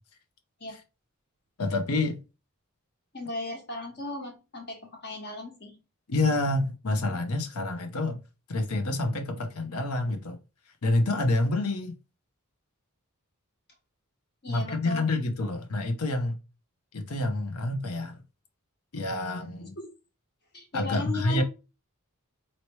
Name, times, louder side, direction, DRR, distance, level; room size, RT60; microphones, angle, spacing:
voice 1, 1.6-2.2 6.1-8.2 8.5-10.4 10.8-11.9 14.5-16.4 16.9-18.2 18.9-19.7 20.7-21.4, left 2 dB, 75° left, 0.8 m, -28 dB
voice 2, 3.1-5.7 14.4-15.1 19.6-19.9 20.5-21.4, left 2 dB, 50° left, 1.3 m, -36 dB
4.2 x 2.9 x 3.1 m
head